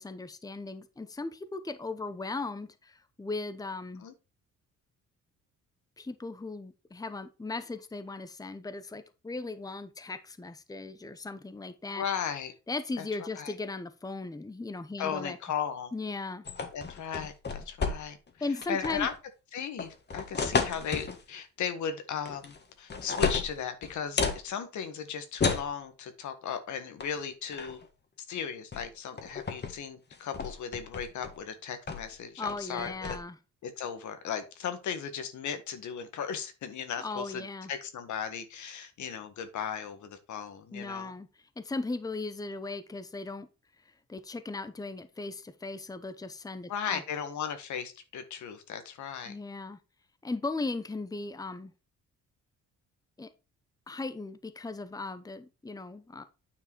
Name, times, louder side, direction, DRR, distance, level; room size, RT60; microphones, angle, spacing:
voice 1, 0.0-4.1 6.0-12.0 12.7-15.4 15.9-16.4 18.4-19.1 32.4-33.4 37.0-37.7 40.7-41.3 41.6-43.5 44.1-47.0 49.3-49.8 50.2-51.7 53.2-53.3 53.9-56.2, left 3 dB, 10° left, 11 dB, 0.9 m, -37 dB
voice 2, 12.0-12.5 13.0-13.5 15.0-15.9 16.7-19.1 19.5-27.8 28.3-33.2 33.6-41.1 46.7-49.4, left 7 dB, 75° left, 9 dB, 1.6 m, -36 dB
sound 1, 16.5-18.3 18.6-19.2 19.8-21.2 22.3-22.6 22.9-24.4 25.4-25.7 27.0-27.2 27.5-27.9 28.7-28.9 29.2-29.7 30.1-31.4 31.9-32.2 32.5-33.2, left 4 dB, 35° left, 1.7 m, -32 dB
9.3 x 4.8 x 4.6 m, 0.30 s
cardioid pair, 90°, 30 cm